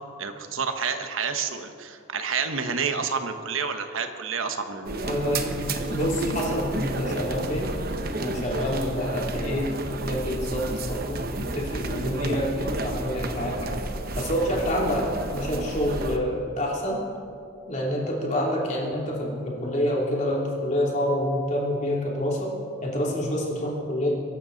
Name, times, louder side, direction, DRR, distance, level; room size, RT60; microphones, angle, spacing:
voice 1, 0.2-5.0, right 5 dB, 75° right, 7 dB, 1.1 m, -29 dB
sound 1, 4.9-16.2, right 2 dB, 45° right, 0.9 m, -31 dB
voice 2, 5.0-5.5 5.9-7.7 8.2-12.5 12.8-13.6 14.1-17.0 17.7-22.5 22.8-24.1, equal, 35° left, -3 dB, 2.9 m, -27 dB
23.0 x 11.5 x 4.0 m, 2.5 s
head